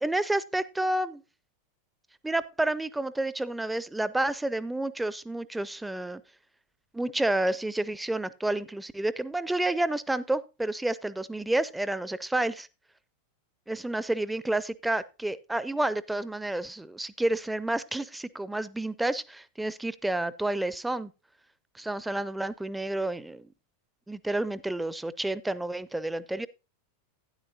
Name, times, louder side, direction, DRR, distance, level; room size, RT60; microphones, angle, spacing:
voice 1, 0.0-1.2 2.2-6.2 6.9-12.7 13.7-21.1 21.8-23.5 24.1-26.5, right 1 dB, 5° right, 0.5 m, -30 dB
12.0 x 10.0 x 2.7 m
figure-of-eight pair, 90°, 0 cm